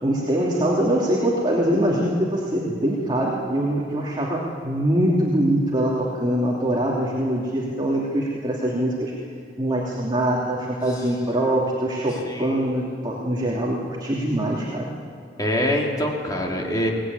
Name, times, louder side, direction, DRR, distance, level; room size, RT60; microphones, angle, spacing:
voice 1, 0.0-9.1 9.6-14.9, right 1 dB, 25° right, -3 dB, 2.9 m, -23 dB
voice 2, 12.2-12.7 15.4-16.9, equal, 20° left, -1 dB, 3.7 m, -24 dB
23.5 x 19.0 x 9.8 m, 2.2 s
head